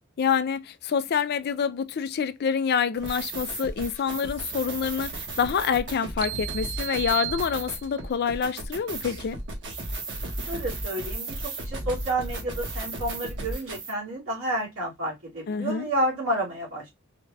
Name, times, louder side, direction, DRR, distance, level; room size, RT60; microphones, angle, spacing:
voice 1, 0.2-9.4 15.5-15.9, left 7 dB, 50° left, 0.4 m, -27 dB
sound 1, 3.0-13.9, right 2 dB, 60° right, 1.3 m, -35 dB
sound 2, 6.2-8.1, right 17 dB, 30° right, 0.3 m, -34 dB
voice 2, 10.5-16.9, right 1 dB, 80° right, 2.6 m, -30 dB
4.2 x 2.4 x 3.2 m
head